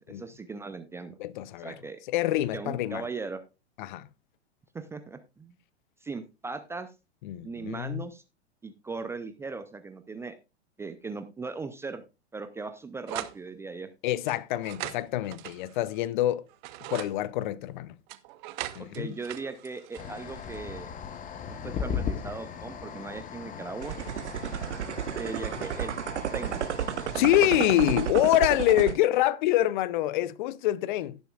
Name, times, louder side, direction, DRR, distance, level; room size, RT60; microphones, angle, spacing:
voice 1, 0.0-1.2 1.6-2.0 2.5-3.4 4.7-5.5 6.0-6.9 7.4-8.2 8.6-10.3 10.8-12.0 12.3-13.9 18.9-20.9 21.5-24.0 25.0-26.0 26.3-26.6, right 4 dB, 10° right, 0.4 m, -38 dB
voice 2, 1.2-1.7 2.1-3.0 3.8-4.1 7.2-8.0 14.0-16.4 16.9-18.0 18.8-19.1 27.1-31.2, left 14 dB, 45° left, 0.6 m, -26 dB
sound 1, 13.1-13.4 14.3-16.1 16.5-17.1 18.1-20.6, right 16 dB, 45° right, 0.8 m, -40 dB
sound 2, 20.0-28.1, left 7 dB, 25° left, 1.0 m, -38 dB
sound 3, 23.8-29.0, right 10 dB, 80° right, 0.6 m, -32 dB
17.5 x 7.1 x 2.4 m
hypercardioid pair, 110°, 34 cm